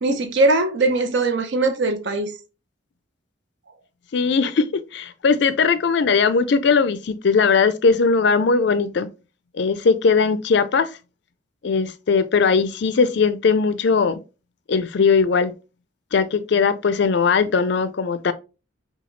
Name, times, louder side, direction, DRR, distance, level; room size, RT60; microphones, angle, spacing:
voice 1, 0.0-2.3, right 2 dB, 60° right, 0.7 m, -20 dB
voice 2, 4.1-9.1 9.5-10.9 11.6-14.2 14.7-15.5 16.1-18.3, left 5 dB, 55° left, 0.4 m, -19 dB
5.6 x 2.3 x 3.1 m
head